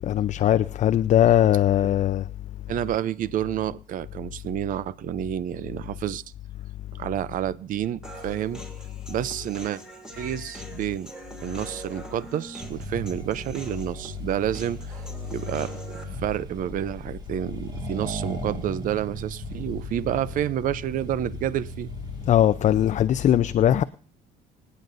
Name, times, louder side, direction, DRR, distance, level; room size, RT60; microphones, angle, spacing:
voice 1, 0.0-2.3 22.3-23.8, left 11 dB, 45° left, 0.5 m, -20 dB
voice 2, 2.7-6.2 6.9-8.6 9.1-9.8 10.2-11.1 11.4-15.0 15.3-21.9, right 11 dB, 55° right, 0.5 m, -29 dB
Human voice, 8.0-16.0, right 1 dB, 5° right, 2.7 m, -43 dB
Accelerating revving vroom, 12.6-23.0, right 2 dB, 25° right, 1.9 m, -38 dB
25.5 x 9.4 x 2.6 m
cardioid pair, 110°, 17 cm